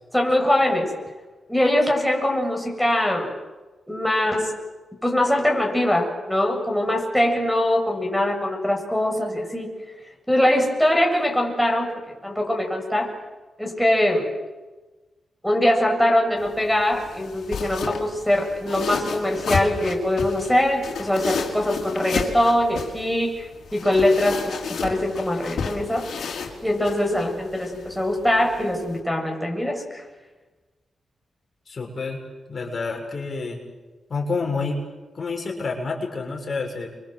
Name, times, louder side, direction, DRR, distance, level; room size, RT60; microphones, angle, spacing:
voice 1, 0.1-0.9 1.5-3.3 3.9-4.6 5.0-9.8 10.3-13.1 13.6-14.3 15.4-26.1 26.6-30.0, left 1 dB, 5° left, 1 dB, 7.6 m, -22 dB
sound 1, 16.4-29.0, left 5 dB, 75° left, 4.4 m, -33 dB
voice 2, 31.7-32.2 32.5-33.6 34.1-34.8 35.1-36.9, left 4 dB, 50° left, 1 dB, 6.6 m, -28 dB
29.5 x 25.0 x 7.9 m, 1.2 s
cardioid pair, 65°, 0 cm